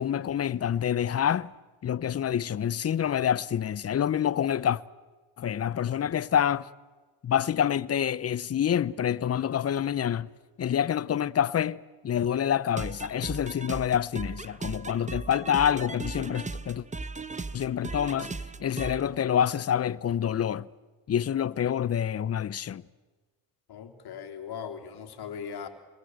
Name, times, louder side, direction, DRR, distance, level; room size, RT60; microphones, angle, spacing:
voice 1, 0.0-1.5 1.8-4.8 5.4-6.7 7.2-10.3 10.6-16.9 17.5-18.3 18.6-20.7 21.1-22.8, left 9 dB, 35° left, 0.8 m, -27 dB
sound 1, 12.7-19.0, right 3 dB, 15° right, 1.1 m, -37 dB
voice 2, 23.7-25.7, left 7 dB, 60° left, 3.3 m, -39 dB
26.5 x 21.0 x 8.0 m
supercardioid pair, 75°, 43 cm